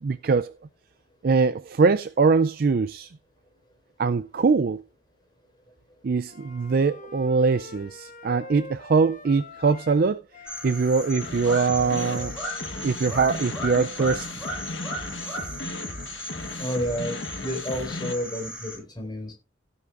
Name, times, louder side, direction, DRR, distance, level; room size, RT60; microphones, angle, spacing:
voice 1, 0.0-0.5 1.2-3.1 4.0-4.8 6.0-10.2 10.6-12.3 12.8-14.3, right 4 dB, 50° right, 0.4 m, -22 dB
Wind instrument woodwind instrument, 6.2-10.0 10.3-14.2, left 3 dB, 45° left, 1.2 m, -45 dB
sound 1, 10.5-18.8, equal, 5° right, 7.9 m, -36 dB
sound 2, 11.2-18.1, left 2 dB, 70° left, 1.3 m, -36 dB
voice 2, 16.6-19.3, equal, 25° left, 4.4 m, -30 dB
17.0 x 8.4 x 2.5 m
head